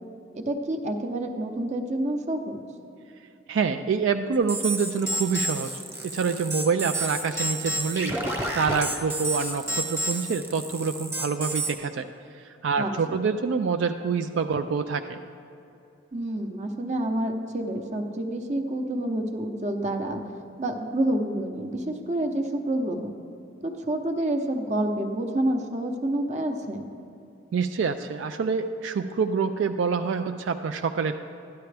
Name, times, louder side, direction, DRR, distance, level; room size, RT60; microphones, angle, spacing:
voice 1, 0.3-2.6 12.8-13.2 16.1-20.2 20.6-23.1 23.6-26.8, right 1 dB, 40° right, 5 dB, 0.8 m, -28 dB
voice 2, 3.5-5.7 6.0-8.2 8.5-12.1 12.6-15.2 27.5-31.2, right 5 dB, 75° right, 7 dB, 0.3 m, -26 dB
sound 1, 4.5-11.7, right 1 dB, 15° right, 1.1 m, -30 dB
12.5 x 10.5 x 3.3 m, 2.8 s
head